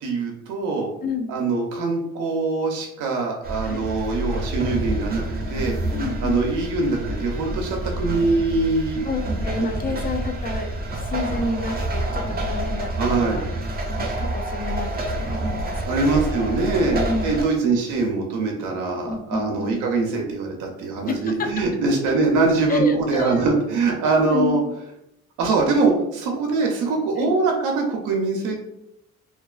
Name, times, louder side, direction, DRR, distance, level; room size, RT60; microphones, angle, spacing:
voice 1, 0.0-0.9 1.3-5.3 5.5-5.7 6.2-9.1 13.0-13.4 15.9-24.6 25.4-28.6, right 3 dB, 90° right, 1 dB, 0.5 m, -23 dB
voice 2, 1.0-1.4 3.6-3.9 5.9-6.5 9.0-13.5 14.0-16.3 16.9-17.3 19.1-19.9 21.1-21.5 22.7-23.4 24.3-24.7 27.2-27.3, left 3 dB, 30° left, 5 dB, 0.4 m, -29 dB
sound 1, 3.4-17.4, right 1 dB, 30° right, 0.6 m, -28 dB
2.4 x 2.2 x 2.3 m, 0.80 s
cardioid pair, 90°, 30 cm